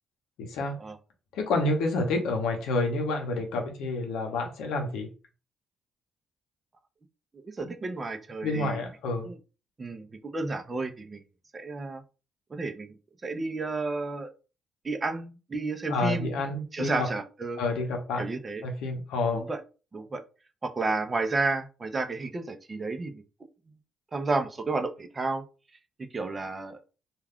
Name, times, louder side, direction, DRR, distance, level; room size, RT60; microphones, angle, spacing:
voice 1, 0.4-0.8 1.3-5.1 8.4-9.3 15.9-17.1 17.6-18.3 18.6-19.5, left 2 dB, 90° left, 3 dB, 0.7 m, -29 dB
voice 2, 7.4-8.8 9.2-9.4 9.8-11.2 11.5-12.0 12.5-12.9 13.2-14.3 14.8-17.6 18.2-18.7 19.3-19.6 19.9-20.2 20.6-23.2 24.1-25.4 26.1-26.8, right 3 dB, 30° right, 6 dB, 0.5 m, -31 dB
2.4 x 2.3 x 3.5 m, 0.33 s
cardioid pair, 90°, 0 cm